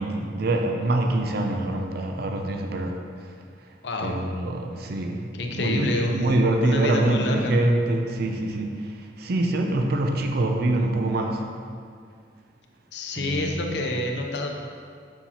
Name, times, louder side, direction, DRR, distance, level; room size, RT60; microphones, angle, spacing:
voice 1, 0.0-3.0 4.0-11.4 13.1-13.9, right 2 dB, 60° right, 3 dB, 0.5 m, -25 dB
voice 2, 3.8-4.2 5.3-7.6 12.9-14.5, left 1 dB, 70° left, 2 dB, 0.7 m, -27 dB
7.1 x 5.6 x 2.8 m, 2.2 s
head